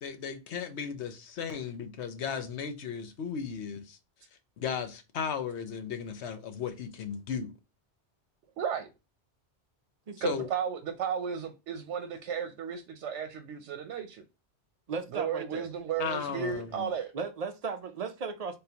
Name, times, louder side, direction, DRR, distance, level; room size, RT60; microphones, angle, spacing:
voice 1, 0.0-4.0 4.6-7.5 10.2-10.5 16.0-16.9, left 7 dB, 75° left, 1.0 m, -35 dB
voice 2, 8.6-8.9 10.2-14.2 15.1-17.1, right 7 dB, 80° right, 0.9 m, -34 dB
voice 3, 10.1-10.5 14.9-15.7 17.1-18.6, right 5 dB, 55° right, 0.4 m, -36 dB
3.8 x 3.7 x 2.8 m
omnidirectional pair, 1.2 m